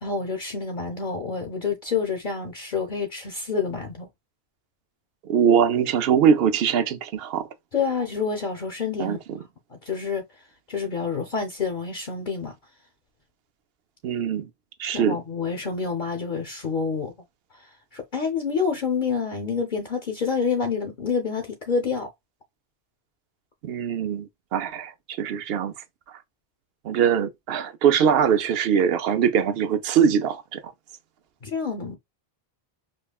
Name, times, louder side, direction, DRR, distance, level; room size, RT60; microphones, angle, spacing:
voice 1, 0.0-4.1 7.7-9.2 9.7-10.2 10.7-12.5 14.9-17.1 17.6-17.7 17.9-22.1 31.4-32.0, left 5 dB, 50° left, 0.9 m, -28 dB
voice 2, 5.2-7.5 9.0-9.4 14.0-14.5 14.8-15.2 23.6-24.9 25.2-25.7 26.8-30.6, right 8 dB, 70° right, 0.8 m, -22 dB
5.3 x 2.2 x 2.3 m
omnidirectional pair, 1.1 m